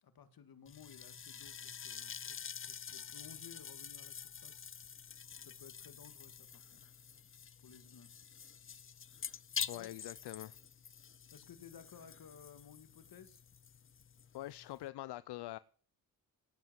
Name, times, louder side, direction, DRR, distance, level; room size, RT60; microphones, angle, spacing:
voice 1, 0.0-4.6 5.4-6.8 7.6-8.1 9.3-9.4 9.7-9.9 11.3-13.4, left 7 dB, 60° left, 2.2 m, -57 dB
sound 1, 0.7-14.9, left 7 dB, 35° left, 0.6 m, -47 dB
voice 2, 9.7-10.6 14.3-15.6, left 15 dB, 85° left, 0.6 m, -44 dB
17.5 x 8.0 x 7.6 m
cardioid pair, 80°, 39 cm